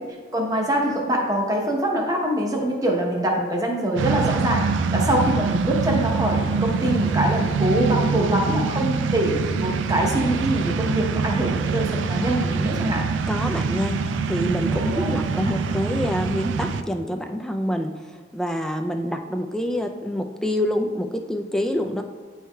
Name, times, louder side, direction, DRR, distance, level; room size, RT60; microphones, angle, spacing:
voice 1, 0.3-13.0 14.7-15.2, right 1 dB, 20° right, 0 dB, 0.8 m, -24 dB
sound 1, 4.0-16.8, right 5 dB, 80° right, 0.3 m, -24 dB
voice 2, 8.2-8.6 13.3-22.0, equal, 5° left, 4 dB, 0.3 m, -27 dB
9.4 x 4.6 x 2.2 m, 1.5 s
head